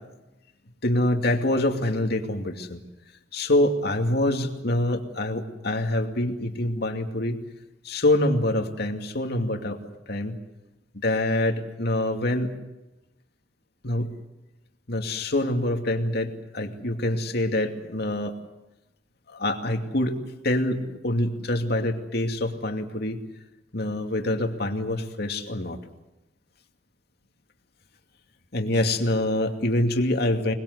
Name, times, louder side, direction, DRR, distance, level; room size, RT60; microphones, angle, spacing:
voice 1, 0.8-2.8 3.3-7.4 7.8-9.8 10.1-10.4 10.9-12.5 13.8-14.1 14.9-18.3 19.3-20.2 20.4-23.2 23.7-25.8 28.5-30.5, left 1 dB, 60° left, 4 dB, 2.5 m, -25 dB
26.0 x 21.0 x 8.2 m, 0.99 s
head